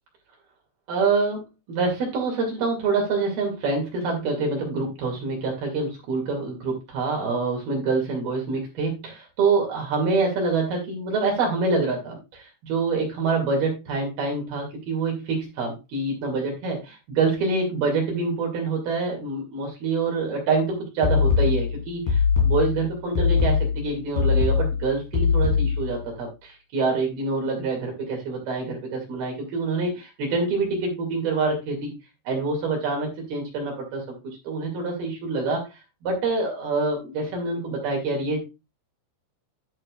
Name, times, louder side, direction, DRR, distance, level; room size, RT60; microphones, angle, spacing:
voice 1, 0.9-31.9 32.3-38.4, right 3 dB, 60° right, 0 dB, 4.1 m, -26 dB
sound 1, 21.0-26.0, left 6 dB, 50° left, 4.6 m, -22 dB
11.5 x 7.4 x 2.4 m, 0.25 s
omnidirectional pair, 5.2 m